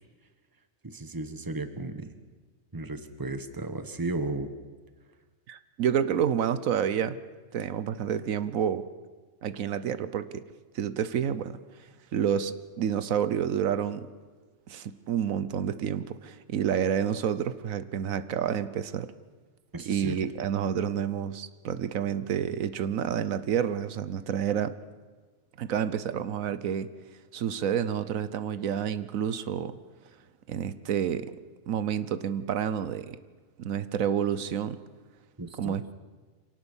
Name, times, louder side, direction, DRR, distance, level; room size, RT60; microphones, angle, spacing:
voice 1, 0.8-2.1 2.7-4.5 19.7-20.2 35.4-35.8, right 2 dB, 15° right, 10 dB, 1.2 m, -34 dB
voice 2, 5.5-7.2 7.5-8.9 9.4-10.4 10.7-11.6 12.1-14.1 14.7-19.1 19.8-24.7 25.6-26.9 27.3-29.8 30.5-31.4 31.7-33.2 33.6-34.8 35.6-35.9, right 8 dB, 80° right, 14 dB, 1.2 m, -29 dB
25.5 x 17.5 x 7.2 m, 1.4 s
omnidirectional pair, 1.4 m